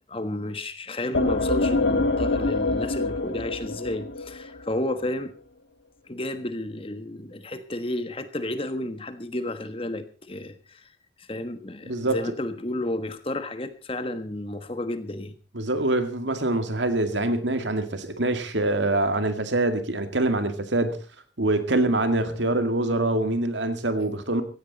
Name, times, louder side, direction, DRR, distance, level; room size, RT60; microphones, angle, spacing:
voice 1, 0.1-5.3 6.1-10.9 11.2-15.3, left 1 dB, 30° left, 1.4 m, -32 dB
sound 1, 1.1-4.7, left 2 dB, 80° left, 1.6 m, -25 dB
voice 2, 11.9-12.2 15.5-21.0 21.4-24.4, right 2 dB, 85° right, 2.1 m, -24 dB
16.0 x 15.5 x 4.1 m
head